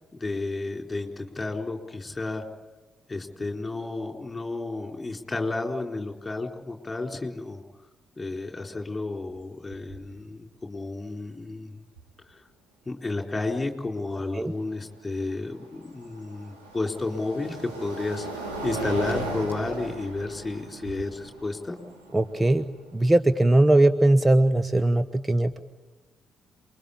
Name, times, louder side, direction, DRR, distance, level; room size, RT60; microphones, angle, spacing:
voice 1, 0.1-2.4 3.1-7.6 8.2-11.8 12.3-12.4 12.9-18.2 18.6-21.8, left 2 dB, 20° left, 3 dB, 4.2 m, -32 dB
sound 1, 9.3-9.4 9.7-10.1 12.0-12.1 15.0-23.2, right 2 dB, 85° right, 3.4 m, -37 dB
voice 2, 22.1-22.7 22.9-25.6, right 1 dB, 20° right, 11 dB, 1.0 m, -20 dB
28.5 x 22.5 x 8.6 m, 1.2 s
figure-of-eight pair, 40°, 0 cm